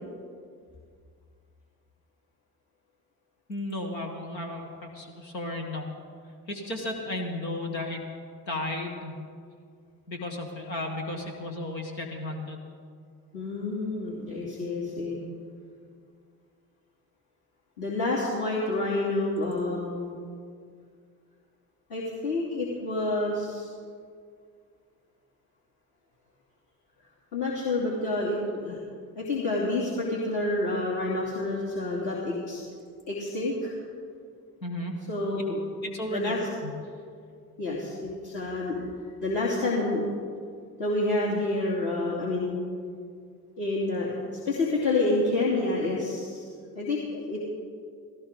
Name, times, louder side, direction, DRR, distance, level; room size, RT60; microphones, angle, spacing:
voice 1, 3.5-5.9 6.5-8.0 8.5-9.2 10.1-12.6 34.6-34.9 35.8-36.3 36.6-36.7, left 1 dB, 90° left, 2 dB, 1.7 m, -34 dB
voice 2, 13.3-15.2 17.8-20.1 21.9-23.7 27.3-28.8 29.2-32.6 33.1-33.7 35.1-35.6 36.1-36.5 37.6-38.8 39.2-40.1 40.8-42.6 43.6-46.5 46.7-47.4, left 2 dB, 55° left, -5 dB, 3.0 m, -28 dB
17.5 x 17.5 x 3.8 m, 2.2 s
hypercardioid pair, 55°, 50 cm